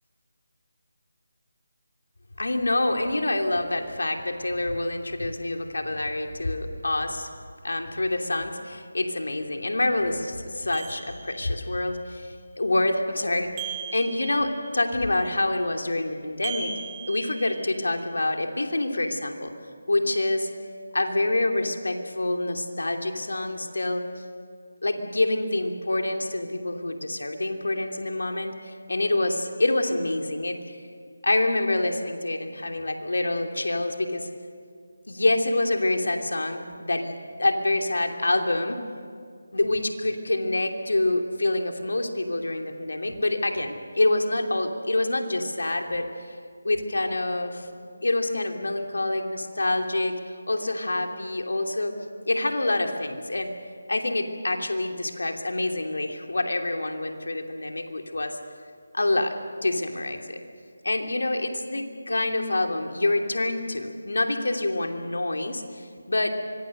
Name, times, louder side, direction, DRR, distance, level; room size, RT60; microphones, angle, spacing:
voice 1, 2.4-7.3 7.6-13.5 13.9-16.7 17.0-19.5 19.9-20.5 20.9-24.2 24.8-30.8 31.2-34.3 35.1-38.8 39.5-46.1 46.6-47.7 48.0-50.1 50.5-51.9 52.3-53.5 53.9-58.4 58.9-59.3 59.6-60.4 60.8-66.3, left 2 dB, 80° left, 4 dB, 2.9 m, -26 dB
sound 1, 10.7-11.7 13.6-14.8 16.4-17.9, right 8 dB, 15° right, 1.1 m, -38 dB
25.0 x 22.5 x 6.7 m, 2.1 s
figure-of-eight pair, 160°, 0 cm